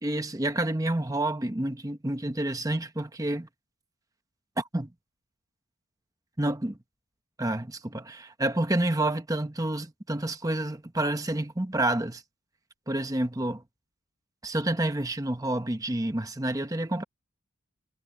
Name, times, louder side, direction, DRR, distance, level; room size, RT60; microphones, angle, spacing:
voice 1, 0.0-3.5 4.6-4.9 6.4-6.8 7.4-12.2 12.9-13.6 14.4-17.0, right 1 dB, 15° right, 1.0 m, -29 dB
head